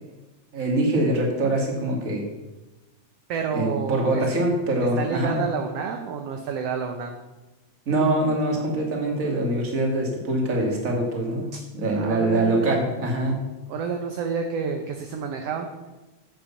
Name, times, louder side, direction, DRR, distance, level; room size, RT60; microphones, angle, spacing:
voice 1, 0.5-2.3 3.5-5.4 7.9-11.5 11.7-13.4, right 1 dB, 30° right, 0 dB, 2.2 m, -24 dB
voice 2, 3.3-4.2 5.0-7.2 11.5-11.6 11.9-12.8 13.7-15.7, right 6 dB, 70° right, 4 dB, 1.7 m, -29 dB
8.6 x 8.0 x 7.2 m, 1.1 s
omnidirectional pair, 3.5 m